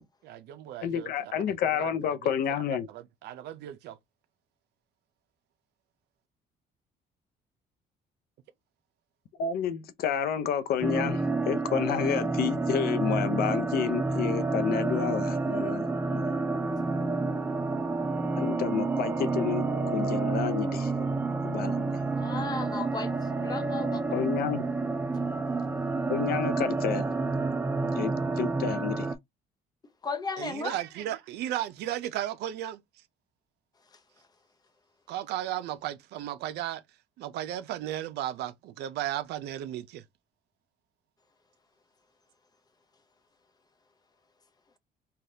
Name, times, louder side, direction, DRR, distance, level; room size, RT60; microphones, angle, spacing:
voice 1, 0.2-1.9 2.2-2.3 2.9-4.0 30.4-32.8 35.1-36.8 37.2-40.0, right 12 dB, 75° right, 0.5 m, -35 dB
voice 2, 0.8-2.9 9.4-16.3 18.4-19.6 19.9-20.9 21.4-22.0 24.1-24.6 26.1-27.0 28.0-29.1, left 8 dB, 65° left, 0.6 m, -30 dB
sound 1, 10.8-29.2, right 3 dB, 15° right, 0.3 m, -29 dB
voice 3, 22.2-23.1 23.4-24.2 30.0-30.8, left 4 dB, 25° left, 0.6 m, -35 dB
3.3 x 2.3 x 2.7 m
cardioid pair, 110°, 17 cm